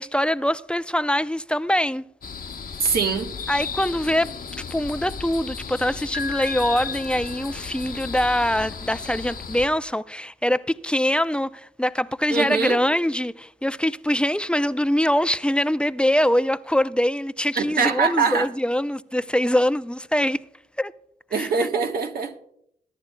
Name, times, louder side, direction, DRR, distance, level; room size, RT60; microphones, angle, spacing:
voice 1, 0.0-2.0 3.5-4.3 4.7-20.4 20.8-20.9 21.3-21.7, equal, 5° left, 0.5 m, -23 dB
sound 1, 2.2-9.7, left 5 dB, 60° left, 1.0 m, -35 dB
voice 2, 2.8-3.3 12.3-12.8 17.5-18.5 21.3-22.4, right 5 dB, 70° right, 1.3 m, -23 dB
Piano, 6.1-8.1, left 4 dB, 15° right, 0.9 m, -36 dB
21.5 x 10.5 x 2.2 m
supercardioid pair, 40°, 16 cm